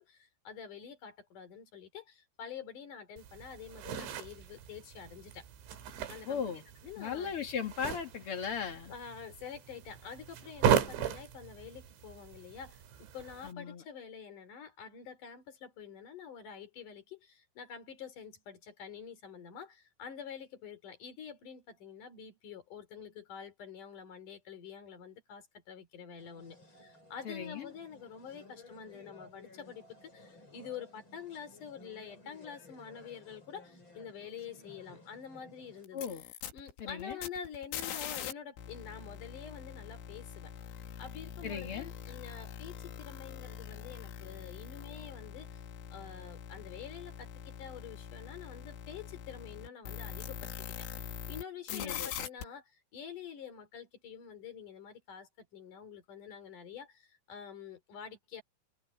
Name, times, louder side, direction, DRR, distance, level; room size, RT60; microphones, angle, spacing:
voice 1, 0.0-5.5 6.1-7.3 8.9-36.1 36.5-40.5 41.0-45.6 45.9-58.4, left 7 dB, 45° left, 4.4 m, -47 dB
sound 1, 3.2-13.5, right 8 dB, 75° right, 4.8 m, -37 dB
voice 2, 6.2-6.6 7.0-8.9 13.4-13.8 27.2-27.7 35.9-36.2 36.8-37.2 41.4-41.9 51.7-52.1, left 7 dB, 65° left, 1.3 m, -37 dB
sound 2, 26.2-35.8, left 2 dB, 25° left, 7.2 m, -57 dB
sound 3, 35.9-38.3 38.6-51.4 51.7-52.4, left 8 dB, 85° left, 4.7 m, -43 dB
omnidirectional pair, 5.4 m